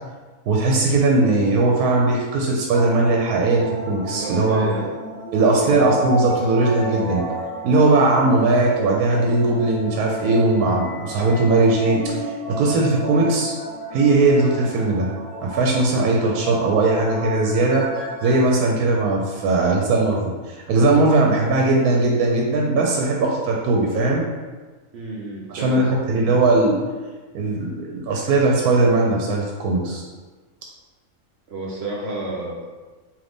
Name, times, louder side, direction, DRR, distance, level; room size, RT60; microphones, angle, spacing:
voice 1, 0.5-4.6 5.3-7.3 7.6-13.5 13.9-15.1 15.4-17.9 18.2-24.2 25.5-26.8 27.3-30.0, right 2 dB, 85° right, -1 dB, 1.1 m, -19 dB
sound 1, 2.7-18.5, right 1 dB, 30° left, 0.8 m, -31 dB
voice 2, 4.1-4.9 5.6-5.9 24.9-26.4 31.5-32.8, right 2 dB, 65° right, -3 dB, 0.7 m, -31 dB
3.8 x 3.0 x 3.4 m, 1.3 s
omnidirectional pair, 1.6 m